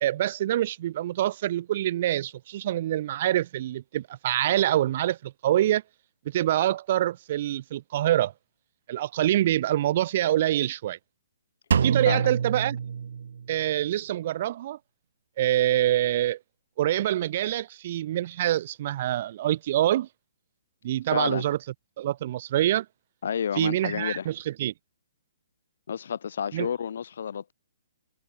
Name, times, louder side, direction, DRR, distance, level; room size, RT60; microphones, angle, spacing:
voice 1, 0.0-5.8 6.3-8.3 8.9-11.0 11.8-12.8 13.5-14.8 15.4-16.4 16.8-20.1 20.8-21.6 22.0-22.9 23.6-24.7 26.5-26.7, right 13 dB, 40° right, 2.3 m, -25 dB
Drum, 11.7-13.6, right 7 dB, 65° right, 2.6 m, -26 dB
voice 2, 21.1-21.4 23.2-24.3 25.9-27.5, left 7 dB, 60° left, 6.4 m, -30 dB
hypercardioid pair, 165°, 0 cm